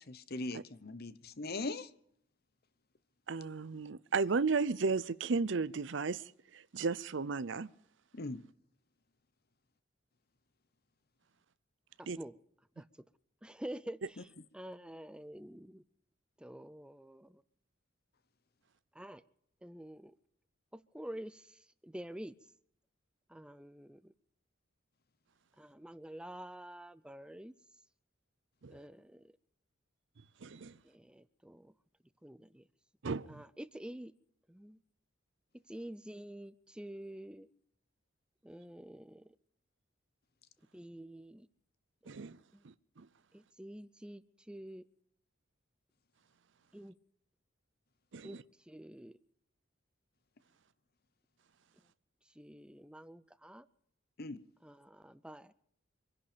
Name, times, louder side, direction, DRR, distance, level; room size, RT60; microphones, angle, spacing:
voice 1, 0.3-1.9 8.1-8.4 54.2-54.4, left 2 dB, 50° left, 0.9 m, -40 dB
voice 2, 3.3-6.2 6.5-7.7 12.1-12.2 28.6-28.8 30.4-30.8 33.0-33.4 42.1-42.4 42.6-43.1 48.1-48.3, right 4 dB, 65° right, 0.6 m, -34 dB
voice 3, 12.0-12.4 12.8-12.9 13.4-14.3 14.5-15.8 16.4-17.4 18.9-19.2 19.6-20.1 20.7-22.4 23.3-24.1 25.6-27.5 28.7-29.3 30.8-31.7 32.2-32.7 33.3-34.1 34.5-34.8 35.5-37.5 38.4-39.3 40.7-41.5 42.0-42.2 42.5-42.6 43.3-44.9 46.7-47.0 48.2-49.2 52.3-53.7 54.6-55.5, right 1 dB, 5° right, 0.5 m, -48 dB
25.5 x 11.0 x 5.1 m
head